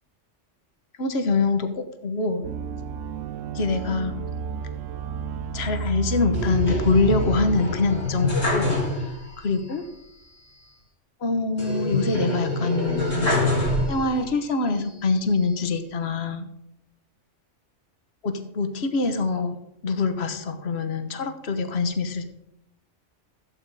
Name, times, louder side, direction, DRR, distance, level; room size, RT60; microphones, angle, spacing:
voice 1, 1.0-2.5 3.5-4.2 5.5-9.8 11.2-13.4 13.9-16.5 18.2-22.2, left 3 dB, 60° left, 8 dB, 1.4 m, -25 dB
sound 1, 2.4-7.6, right 6 dB, 85° right, 1.0 m, -31 dB
sound 2, 6.3-9.4 9.7-9.8 11.6-14.3 14.9-15.7, left 2 dB, 90° left, 3.8 m, -26 dB
14.0 x 8.9 x 4.8 m, 0.82 s
omnidirectional pair, 1.3 m